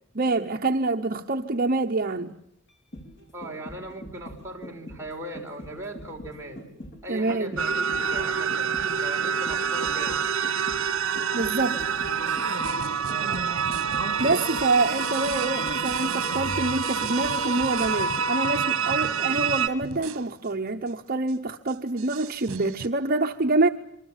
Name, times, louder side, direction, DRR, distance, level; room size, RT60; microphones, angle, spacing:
voice 1, 0.1-2.4 7.1-7.6 11.3-11.8 14.2-23.7, right 2 dB, 45° right, 4 dB, 1.0 m, -26 dB
sound 1, 2.7-18.6 18.9-19.0, left 1 dB, 55° left, 4.3 m, -43 dB
voice 2, 3.3-6.6 7.0-10.2 13.1-13.4, right 1 dB, 15° right, -1 dB, 5.3 m, -39 dB
sound 2, 7.6-19.7, right 6 dB, 65° right, 2.3 m, -27 dB
sound 3, 12.6-20.5 20.9-21.0 21.3-21.4 21.7-22.9, right 5 dB, 85° right, 1.0 m, -40 dB
27.5 x 24.0 x 7.4 m, 0.76 s
head